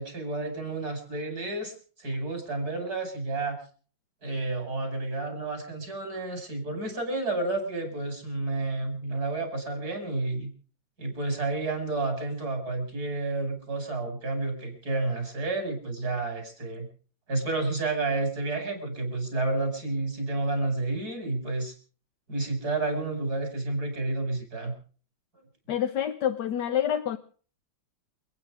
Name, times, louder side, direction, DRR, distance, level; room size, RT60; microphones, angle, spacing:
voice 1, 0.0-3.6 4.2-10.5 11.0-16.9 17.3-21.7 22.3-24.7, right 2 dB, 50° right, 5 dB, 6.1 m, -30 dB
voice 2, 25.7-27.2, left 10 dB, 65° left, 7 dB, 1.5 m, -27 dB
28.5 x 9.6 x 5.0 m, 0.42 s
omnidirectional pair, 2.1 m